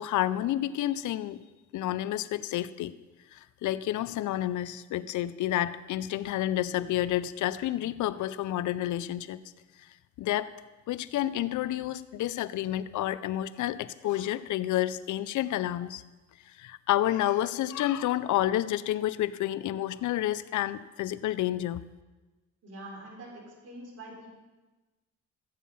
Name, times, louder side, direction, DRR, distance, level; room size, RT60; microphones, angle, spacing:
voice 1, 0.0-1.4 1.7-2.9 3.3-9.4 10.2-10.5 10.9-16.0 16.5-21.8, left 13 dB, 75° left, 15 dB, 0.6 m, -30 dB
voice 2, 22.6-24.3, right 1 dB, 55° right, -1 dB, 4.3 m, -45 dB
14.0 x 8.4 x 5.5 m, 1.2 s
cardioid pair, 90°, 30 cm